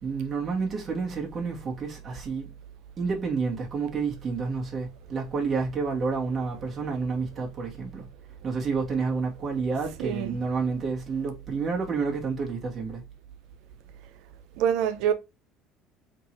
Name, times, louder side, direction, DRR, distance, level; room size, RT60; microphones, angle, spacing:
voice 1, 0.0-2.5 3.0-8.1 8.4-13.0, right 4 dB, 30° right, 1.5 m, -29 dB
voice 2, 10.0-10.4 14.6-15.1, right 9 dB, 75° right, 0.7 m, -25 dB
3.8 x 2.7 x 4.4 m
cardioid pair, 120°, 0 cm